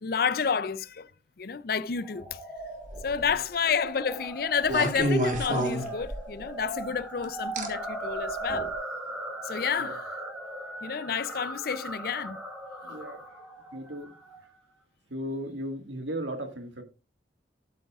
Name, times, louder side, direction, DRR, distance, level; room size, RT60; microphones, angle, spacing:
voice 1, 0.0-1.1 1.4-2.4 3.0-8.7 9.4-10.1 10.8-12.4, left 6 dB, 55° left, 0.5 m, -30 dB
sound 1, 2.0-14.4, right 1 dB, 5° right, 4.0 m, -38 dB
sound 2, 2.8-3.3 4.7-6.4 7.6-7.7 8.5-8.7, right 1 dB, 45° right, 1.8 m, -28 dB
voice 2, 12.8-13.2 13.7-14.1 15.1-16.8, right 1 dB, 80° right, 1.8 m, -36 dB
12.0 x 8.1 x 2.4 m
head